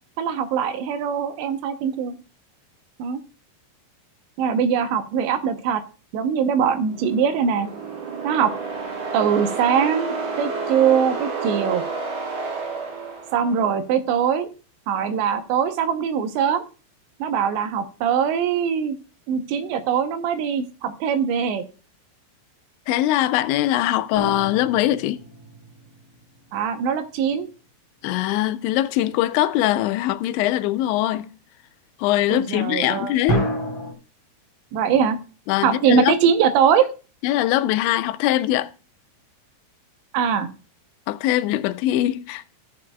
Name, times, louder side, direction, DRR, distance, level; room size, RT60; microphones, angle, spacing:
voice 1, 0.2-2.2 3.0-3.2 4.4-5.8 6.1-7.7 8.2-8.5 9.1-11.8 13.3-14.5 14.9-16.6 17.2-19.0 19.3-21.6 26.5-27.5 32.3-33.1 34.7-35.2 35.6-36.8 40.1-40.5, right 7 dB, 80° right, 3.0 m, -22 dB
sound 1, 6.8-13.8, right 4 dB, 50° right, 2.3 m, -30 dB
voice 2, 22.9-25.2 28.0-31.3 32.0-33.5 35.5-36.2 37.2-38.7 41.1-42.4, left 14 dB, 85° left, 2.9 m, -22 dB
sound 2, 24.1-26.2 33.3-33.9, right 1 dB, 10° right, 1.9 m, -28 dB
15.0 x 8.4 x 2.3 m
omnidirectional pair, 5.2 m